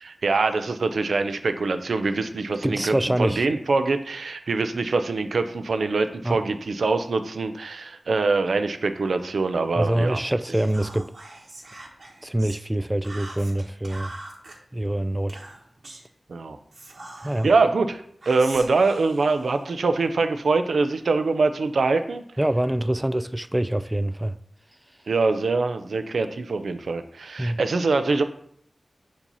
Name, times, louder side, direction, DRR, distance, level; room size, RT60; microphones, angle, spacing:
voice 1, 0.0-10.2 16.3-16.6 17.4-22.2 25.1-28.2, right 3 dB, 85° right, 0.5 m, -24 dB
voice 2, 2.6-3.6 6.2-6.4 9.8-11.1 12.2-14.1 14.7-15.4 17.2-17.5 22.4-24.3 27.4-27.6, right 1 dB, 20° right, 0.3 m, -25 dB
Whispering, 10.5-12.6 13.0-14.6 15.3-16.1 16.7-17.6 18.2-20.1, right 2 dB, 65° right, 1.1 m, -43 dB
7.3 x 2.8 x 5.4 m
cardioid pair, 40°, 0 cm